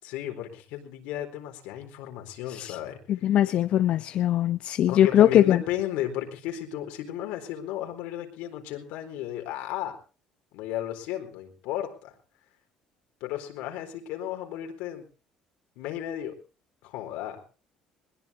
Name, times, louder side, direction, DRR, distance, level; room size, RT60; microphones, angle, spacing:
voice 1, 0.0-3.0 4.9-10.0 10.5-12.1 13.2-15.1 15.8-16.4 16.8-17.4, left 12 dB, 90° left, 5 dB, 4.2 m, -34 dB
voice 2, 3.1-5.6, left 11 dB, 55° left, 12 dB, 0.7 m, -21 dB
21.0 x 20.5 x 2.7 m, 0.36 s
cardioid pair, 135°, 2 cm